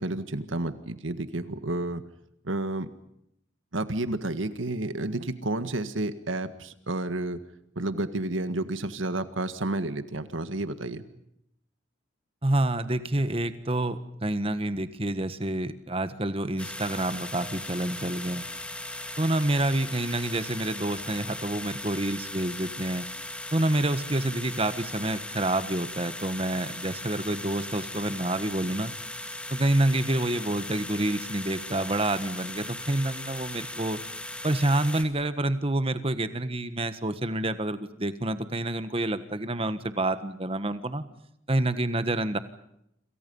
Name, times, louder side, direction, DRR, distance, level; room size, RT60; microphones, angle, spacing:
voice 1, 0.0-2.0 2.4-2.9 3.7-7.4 7.8-11.0, right 2 dB, 85° right, 10 dB, 1.8 m, -31 dB
voice 2, 12.4-18.4 19.2-23.0 23.5-28.9 29.5-34.0 34.4-41.0 41.5-42.4, right 1 dB, 30° right, 11 dB, 1.5 m, -28 dB
sound 1, 16.6-35.0, left 1 dB, 5° left, 2.0 m, -38 dB
28.5 x 27.5 x 5.6 m, 0.77 s
head